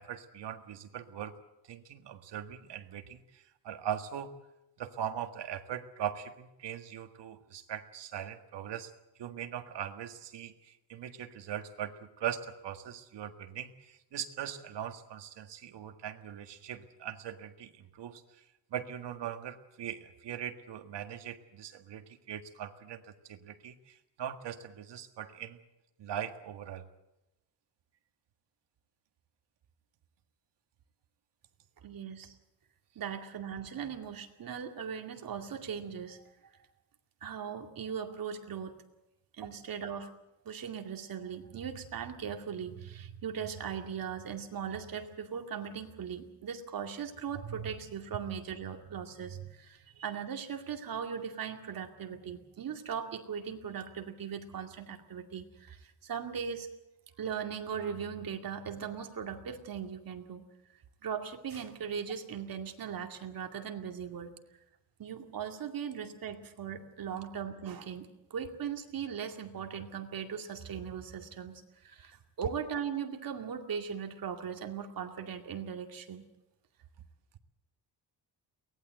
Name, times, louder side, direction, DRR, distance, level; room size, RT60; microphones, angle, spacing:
voice 1, 0.0-1.3 1.7-4.4 4.8-8.9 9.2-18.2 18.7-25.6 26.0-26.9, right 9 dB, 75° right, 7 dB, 1.8 m, -40 dB
voice 2, 31.8-32.4 33.0-36.5 37.2-38.8 39.4-40.1 40.4-56.7 57.2-60.4 61.0-64.3 65.0-76.2, right 7 dB, 50° right, 4 dB, 2.4 m, -39 dB
23.0 x 18.5 x 7.8 m, 0.93 s
wide cardioid pair, 160°, 42 cm